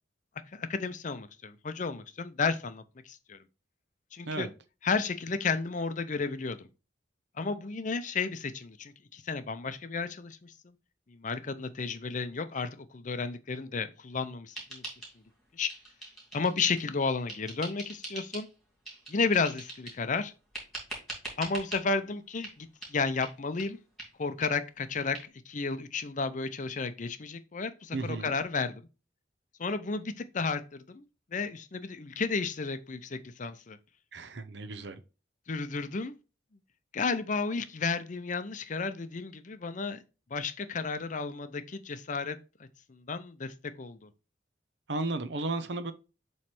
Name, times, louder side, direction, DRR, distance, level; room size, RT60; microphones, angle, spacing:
voice 1, 0.5-3.4 4.1-4.5 4.8-6.7 7.4-10.7 11.1-14.8 15.5-15.7 16.3-18.5 19.1-20.3 21.4-23.8 24.2-25.2 25.5-28.8 29.6-31.0 31.3-33.8 35.5-36.1 36.9-40.0 40.3-44.1, left 4 dB, 45° left, 0.6 m, -33 dB
sound 1, 14.5-15.4 15.7-16.9 17.3-18.5 18.8-20.0 20.5-21.8 22.4-22.6 22.8-22.9 23.2-23.3 23.6-23.7 24.0-24.1 24.4-24.5 24.8-24.9 25.1-25.2, right 2 dB, ahead, 2.7 m, -42 dB
voice 2, 27.9-28.3 34.1-35.0 44.9-45.9, right 2 dB, 65° right, 0.7 m, -34 dB
7.5 x 3.2 x 4.4 m
head